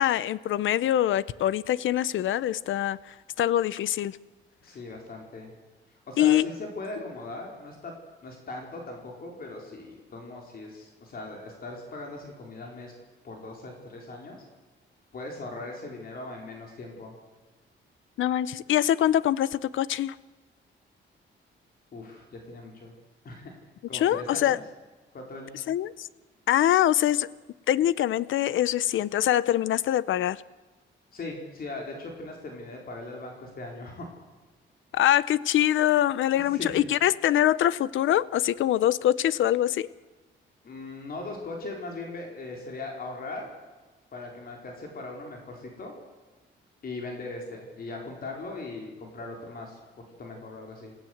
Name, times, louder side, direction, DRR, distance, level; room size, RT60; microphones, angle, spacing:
voice 1, 0.0-4.2 6.2-6.5 18.2-20.1 23.9-24.6 25.7-26.1 26.5-27.3 27.7-30.4 34.9-39.9, left 12 dB, 80° left, 19 dB, 0.7 m, -24 dB
voice 2, 4.6-5.5 6.1-7.9 8.2-12.9 13.2-14.4 15.1-17.1 21.9-22.9 23.2-23.5 23.9-24.6 25.1-25.6 31.1-34.1 36.4-36.8 40.6-43.5 44.1-45.9 46.8-51.0, left 2 dB, 50° left, 1 dB, 4.5 m, -39 dB
28.0 x 16.5 x 8.0 m, 1.2 s
cardioid pair, 145°, 20 cm